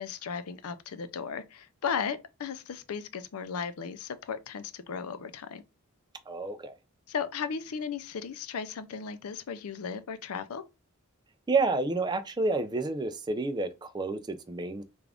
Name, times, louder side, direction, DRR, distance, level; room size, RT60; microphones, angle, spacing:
voice 1, 0.0-5.6 7.1-10.6, left 6 dB, 85° left, 0.5 m, -36 dB
voice 2, 6.3-6.7 11.5-14.8, right 3 dB, 20° right, 0.3 m, -29 dB
3.5 x 2.4 x 3.4 m
head